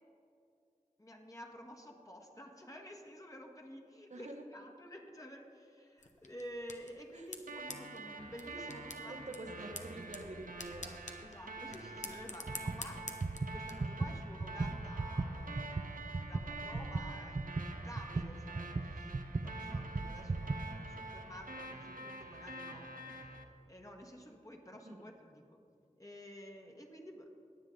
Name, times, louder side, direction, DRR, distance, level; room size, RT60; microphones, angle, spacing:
voice 1, 1.0-9.3 11.2-13.0 13.5-15.7 16.2-19.1 19.4-23.3 23.6-25.4 26.0-27.3, equal, 25° left, 1 dB, 1.6 m, -51 dB
voice 2, 4.1-4.4 7.1-7.3 9.1-11.0 24.8-25.0, right 2 dB, 60° right, 3 dB, 1.2 m, -47 dB
sound 1, 6.0-13.7, left 3 dB, 60° left, 1.0 m, -49 dB
sound 2, 7.5-23.4, right 2 dB, 85° right, 0.9 m, -47 dB
sound 3, 12.5-12.8 13.1-20.7, right 3 dB, 40° right, 0.6 m, -37 dB
19.5 x 7.4 x 3.9 m, 2.4 s
cardioid pair, 40°, 14 cm